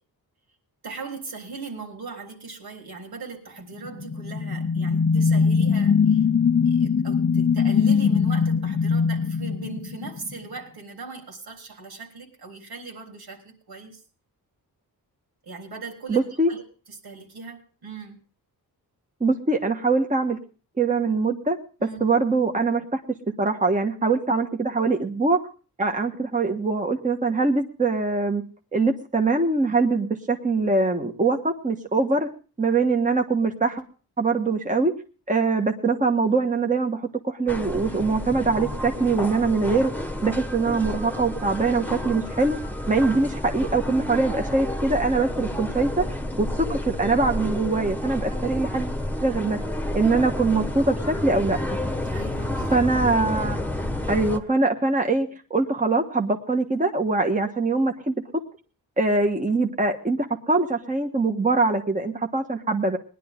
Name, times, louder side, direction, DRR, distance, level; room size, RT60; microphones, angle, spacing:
voice 1, 0.8-6.2 6.6-14.0 15.4-16.6 16.9-18.2 21.8-22.0 52.1-52.8, right 4 dB, 80° right, 2 dB, 3.7 m, -39 dB
sound 1, 3.8-10.4, left 6 dB, 35° left, 0.6 m, -21 dB
voice 2, 16.1-16.5 19.2-20.4 20.8-23.0 23.4-25.4 25.8-28.4 28.7-32.3 32.6-33.8 34.2-34.9 35.3-42.6 42.9-49.6 49.9-51.6 52.7-53.6 54.1-58.2 59.0-63.0, right 3 dB, 20° right, 4 dB, 1.3 m, -23 dB
sound 2, 37.5-54.4, left 1 dB, 5° left, 1.3 m, -30 dB
19.5 x 11.0 x 3.7 m, 0.38 s
wide cardioid pair, 95°, 38 cm